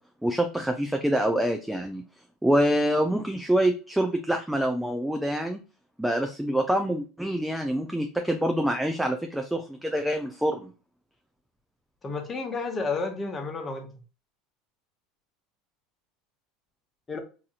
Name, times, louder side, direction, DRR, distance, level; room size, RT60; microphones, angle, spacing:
voice 1, 0.2-2.0 2.4-5.6 6.0-10.7, right 1 dB, 5° right, 0.5 m, -26 dB
voice 2, 12.0-13.9 17.1-17.2, left 3 dB, 25° left, 1.1 m, -31 dB
4.1 x 2.6 x 2.4 m
hypercardioid pair, 95°, 0 cm